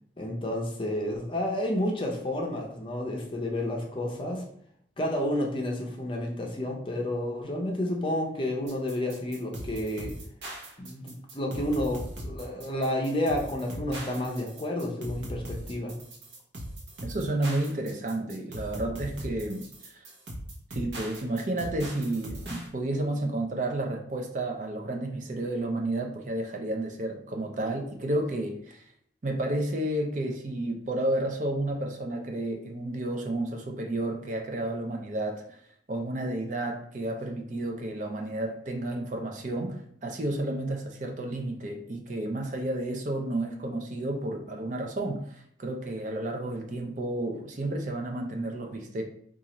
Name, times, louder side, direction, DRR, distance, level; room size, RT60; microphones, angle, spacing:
voice 1, 0.2-4.4 5.0-10.1 10.8-16.0, left 1 dB, 25° left, 0 dB, 0.5 m, -30 dB
sound 1, 8.7-22.7, right 1 dB, 70° right, 0.8 m, -40 dB
voice 2, 17.0-20.1 20.7-28.8 29.2-35.4 35.9-49.0, right 1 dB, 40° right, 3 dB, 0.5 m, -31 dB
4.0 x 2.4 x 2.9 m, 0.66 s
head